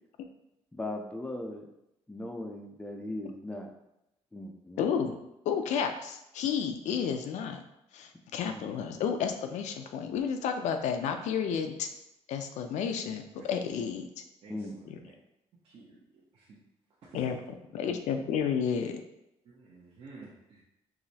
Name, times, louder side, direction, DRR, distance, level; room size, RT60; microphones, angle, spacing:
voice 1, 0.7-1.7 2.1-3.7 4.3-5.1 8.5-9.0 14.5-14.8 17.9-18.0, left 1 dB, 10° left, 2 dB, 0.4 m, -39 dB
voice 2, 4.8-5.2 5.5-7.6 7.9-11.9 12.3-13.2 13.5-14.1 14.9-15.0 17.1-17.4 17.7-19.0, left 7 dB, 75° left, 6 dB, 0.5 m, -31 dB
voice 3, 14.4-15.1 15.6-16.6 17.0-17.2 19.4-20.6, right 3 dB, 50° right, -7 dB, 0.8 m, -52 dB
4.9 x 3.1 x 2.8 m, 0.86 s
cardioid pair, 170°, 12 cm